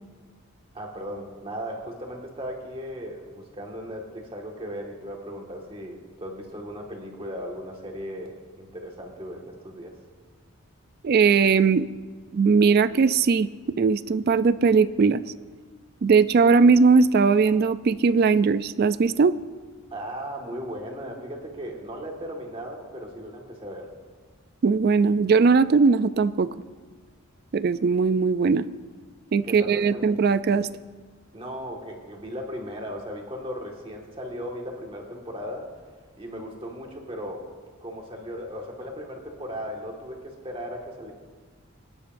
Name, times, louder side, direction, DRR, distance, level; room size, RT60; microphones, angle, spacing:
voice 1, 0.7-9.9 19.9-23.9 29.4-30.0 31.3-35.7 36.2-37.5 37.8-41.1, equal, 25° right, 0 dB, 1.7 m, -37 dB
voice 2, 11.0-11.9 12.3-13.5 13.8-15.2 16.0-19.4 24.6-26.5 27.5-28.7 29.3-30.7, right 5 dB, 45° right, 14 dB, 0.3 m, -19 dB
24.0 x 9.9 x 2.6 m, 1.5 s
head